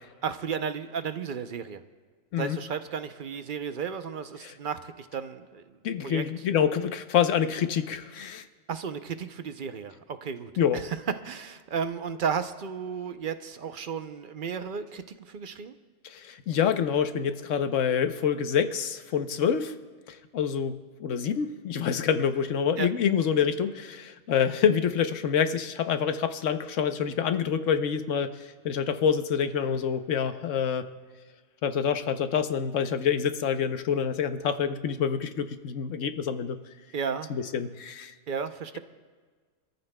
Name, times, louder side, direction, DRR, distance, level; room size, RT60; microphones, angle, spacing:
voice 1, 0.2-1.8 2.4-5.8 6.0-6.2 8.7-11.0 11.2-15.7 19.4-19.5 22.8-22.9 36.9-37.3 38.3-38.8, right 6 dB, 50° right, 9 dB, 0.7 m, -34 dB
voice 2, 5.8-8.4 10.6-10.8 16.0-19.8 20.1-30.9 31.6-36.6 37.3-38.1, left 7 dB, 80° left, 9 dB, 1.1 m, -27 dB
26.0 x 14.0 x 2.2 m, 1.5 s
omnidirectional pair, 1.3 m